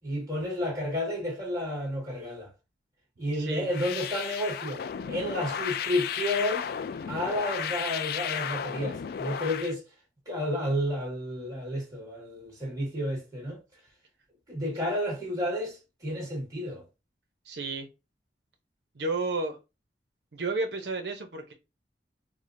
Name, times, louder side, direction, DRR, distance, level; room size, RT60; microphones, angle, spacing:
voice 1, 0.0-2.5 3.2-6.7 7.1-9.8 10.2-13.6 14.5-16.8, left 1 dB, 20° right, 1.7 m, -31 dB
sound 1, 3.7-9.7, left 8 dB, 60° left, 0.3 m, -34 dB
voice 2, 17.5-17.9 18.9-19.6 20.3-21.5, right 3 dB, 70° right, 0.7 m, -31 dB
4.7 x 2.1 x 2.5 m
head